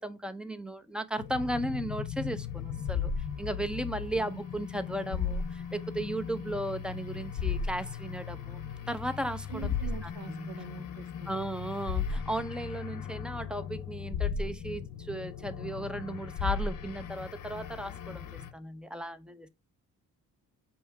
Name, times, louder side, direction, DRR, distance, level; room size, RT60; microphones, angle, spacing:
voice 1, 0.0-3.1 3.4-8.6 8.9-9.7 10.0-10.7 11.3-19.5, right 1 dB, ahead, 0.6 m, -36 dB
sound 1, 1.2-18.5, left 7 dB, 55° left, 0.8 m, -36 dB
sound 2, 2.6-8.9, right 13 dB, 40° right, 1.0 m, -62 dB
voice 2, 9.5-11.5, right 8 dB, 70° right, 0.8 m, -45 dB
5.4 x 2.9 x 3.3 m
supercardioid pair, 75°, 38 cm